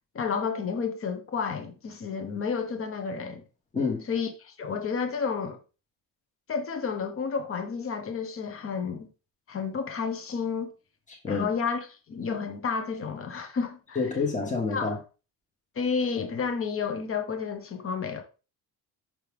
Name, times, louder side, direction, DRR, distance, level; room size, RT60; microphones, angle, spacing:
voice 1, 0.1-3.4 4.1-5.6 6.5-9.1 9.5-10.7 11.3-11.8 12.1-14.0 14.7-14.9 15.7-18.2, left 5 dB, 35° left, 1.2 m, -31 dB
voice 2, 3.7-4.1 11.2-11.5 13.9-15.0, left 4 dB, 20° left, 1.5 m, -28 dB
6.2 x 5.5 x 3.5 m
cardioid pair, 145°, 37 cm